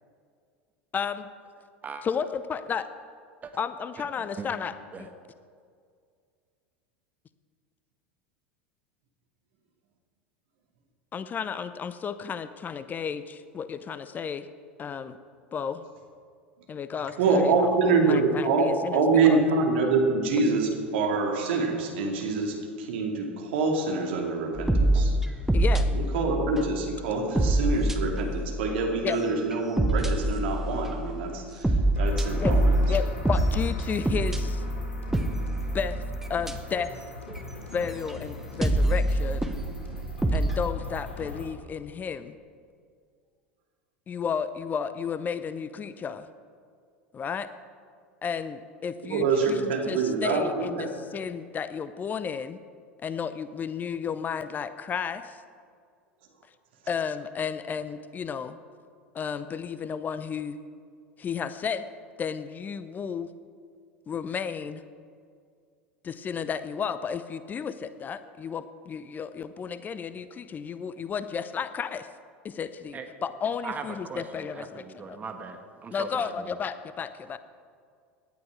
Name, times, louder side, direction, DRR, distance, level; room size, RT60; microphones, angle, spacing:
voice 1, 0.9-1.3 2.0-2.9 3.6-5.1 11.1-14.5 14.8-15.2 15.5-15.8 16.7-17.8 18.0-19.0 19.3-19.5 25.5-25.9 29.0-29.2 32.4-32.6 32.9-34.6 35.7-36.0 36.3-36.9 37.7-39.5 40.3-42.4 44.1-46.3 47.1-47.5 48.2-52.6 53.0-55.4 56.9-58.6 59.1-60.6 61.2-61.9 62.2-63.3 64.1-64.8 66.0-72.1 72.4-75.2 75.9-77.4, left 6 dB, 25° left, 13 dB, 0.6 m, -33 dB
voice 2, 17.2-25.2 25.9-32.9 49.0-50.9, right 4 dB, 65° right, 2 dB, 2.4 m, -25 dB
sound 1, 24.6-26.9 27.4-28.8 29.2-31.2 31.6-36.9 37.3-37.4 37.8-38.1 38.6-40.7, right 1 dB, 5° right, 1.2 m, -26 dB
sound 2, 31.9-41.5, left 2 dB, 80° left, 3.9 m, -41 dB
voice 3, 74.1-76.5, right 5 dB, 25° right, 6 dB, 1.5 m, -39 dB
17.5 x 11.5 x 4.8 m, 2.2 s
figure-of-eight pair, 80°, 6 cm